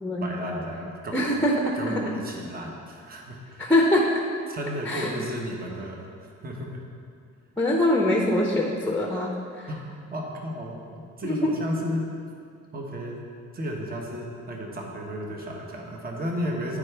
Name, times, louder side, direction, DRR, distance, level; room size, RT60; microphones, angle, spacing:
voice 1, 0.2-1.3 1.7-3.7 4.5-6.1 6.4-6.8 9.7-9.8 10.1-12.1 12.7-13.3 13.5-16.8, equal, 30° right, 0 dB, 1.0 m, -33 dB
voice 2, 1.1-2.0 3.6-4.1 4.9-5.1 7.6-9.3 9.6-9.7 11.2-11.5, left 1 dB, 5° left, 0 dB, 0.7 m, -23 dB
10.5 x 4.8 x 3.3 m, 2.3 s
cardioid pair, 90°, 30 cm